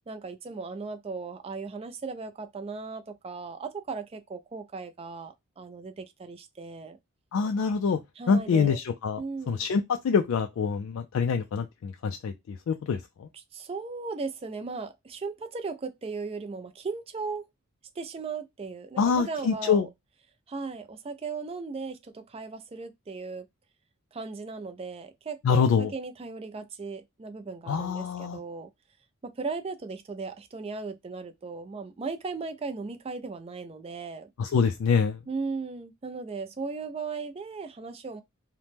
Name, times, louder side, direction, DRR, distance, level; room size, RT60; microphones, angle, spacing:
voice 1, 0.1-7.0 8.2-8.8 9.2-9.6 13.5-17.4 18.0-19.9 20.5-23.5 24.1-28.7 29.2-34.3 35.3-38.2, right 4 dB, 25° right, 0.3 m, -37 dB
voice 2, 7.3-8.0 8.3-9.2 9.5-13.3 19.0-19.9 25.4-25.9 27.7-28.4 34.4-35.2, left 5 dB, 65° left, 0.3 m, -25 dB
2.8 x 2.1 x 3.3 m
head